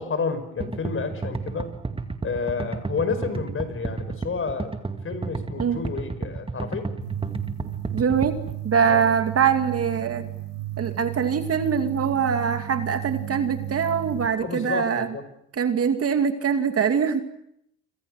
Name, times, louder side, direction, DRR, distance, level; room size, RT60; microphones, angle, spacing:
voice 1, 0.0-1.7 2.2-4.7 5.0-6.9 8.9-9.1 14.4-15.2, left 5 dB, 35° left, 11 dB, 5.2 m, -30 dB
sound 1, 0.6-8.6, right 3 dB, 15° right, 2.3 m, -32 dB
sound 2, 7.0-14.3, right 15 dB, 85° right, 7.6 m, -34 dB
voice 2, 7.9-8.4 8.6-10.3 10.8-15.1 15.5-17.2, right 7 dB, 40° right, 7 dB, 2.4 m, -23 dB
28.5 x 26.5 x 6.5 m, 0.76 s
supercardioid pair, 85°, 37 cm